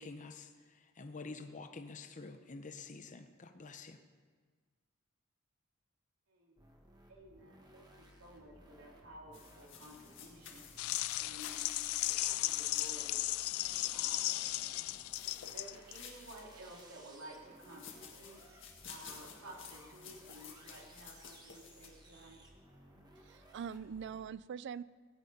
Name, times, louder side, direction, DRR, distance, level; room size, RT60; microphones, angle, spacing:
voice 1, 0.0-4.0, left 3 dB, 35° left, 7 dB, 0.7 m, -48 dB
voice 2, 6.3-6.6 7.1-10.6 11.2-13.2 13.9-14.4 15.4-18.6 18.9-22.4, right 1 dB, 85° right, -1 dB, 2.8 m, -54 dB
sound 1, 6.6-24.3, right 1 dB, 20° right, 1.5 m, -60 dB
sound 2, 9.3-14.0 14.9-16.9 17.5-21.9, left 7 dB, 65° left, 1.9 m, -54 dB
sound 3, 10.8-16.0, left 16 dB, 90° left, 0.4 m, -36 dB
voice 3, 23.2-24.8, right 7 dB, 55° right, 18 dB, 0.3 m, -43 dB
17.5 x 9.2 x 5.3 m, 1.5 s
head